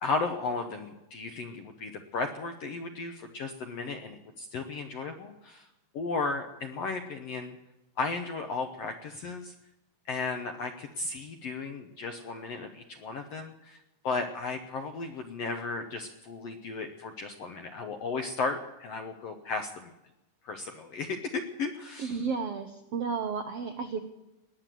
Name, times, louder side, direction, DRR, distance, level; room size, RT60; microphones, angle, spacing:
voice 1, 0.0-5.7 5.9-7.6 8.0-9.5 10.1-19.9 20.4-22.1, left 4 dB, 70° left, 6 dB, 1.6 m, -35 dB
voice 2, 22.0-24.0, right 5 dB, 75° right, 7 dB, 1.4 m, -32 dB
19.5 x 9.7 x 7.6 m, 0.93 s
omnidirectional pair, 3.9 m